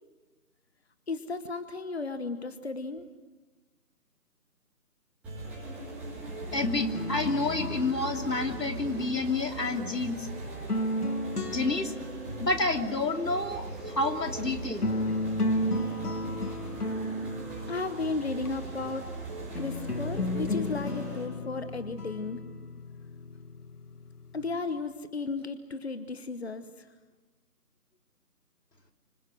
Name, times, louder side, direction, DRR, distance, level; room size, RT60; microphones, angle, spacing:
voice 1, 1.1-3.1 17.7-19.1 19.6-22.4 24.3-26.9, left 3 dB, 40° left, 10 dB, 1.2 m, -34 dB
sound 1, 5.2-21.2, right 2 dB, 5° right, 3.6 m, -40 dB
voice 2, 6.5-10.3 11.4-11.9 12.4-14.9, left 3 dB, 90° left, 5 dB, 3.0 m, -29 dB
sound 2, 6.5-9.8 10.4-12.6 14.4-14.5 14.8-18.5 19.6-24.6, left 1 dB, 70° left, 1.6 m, -34 dB
27.0 x 25.5 x 6.5 m, 1.2 s
figure-of-eight pair, 170°, 48 cm